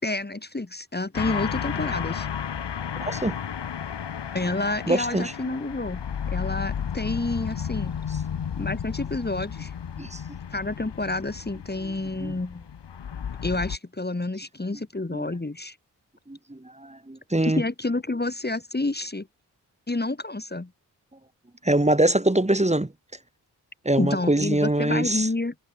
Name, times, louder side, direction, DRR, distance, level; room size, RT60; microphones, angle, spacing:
voice 1, 0.0-2.3 4.3-8.0 8.6-9.7 10.5-12.7 13.4-15.8 17.4-19.3 19.9-20.7 24.0-25.5, left 2 dB, 25° left, 2.6 m, -29 dB
Cave Dungeon Secret Temle, 1.1-13.8, left 8 dB, 75° left, 3.5 m, -33 dB
voice 2, 3.0-3.4 4.9-5.3 10.0-10.2 12.2-12.3 15.1-15.3 16.3-17.6 21.6-22.9 23.8-25.3, right 1 dB, 15° right, 3.2 m, -23 dB
supercardioid pair, 40°, 42 cm